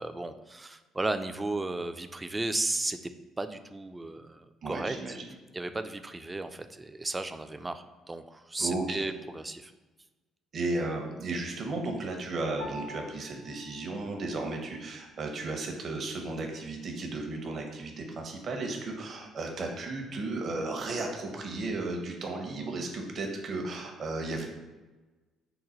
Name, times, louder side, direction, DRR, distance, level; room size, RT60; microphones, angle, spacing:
voice 1, 0.0-3.1 3.4-5.2 5.5-9.7, right 2 dB, 20° right, 10 dB, 0.3 m, -34 dB
voice 2, 4.6-5.2 8.6-9.0 10.5-24.4, right 2 dB, 55° right, 2 dB, 0.7 m, -34 dB
Piano, 12.6-22.2, left 1 dB, 90° right, 0.7 m, -51 dB
3.9 x 2.2 x 4.2 m, 1.2 s
hypercardioid pair, 55°, 0 cm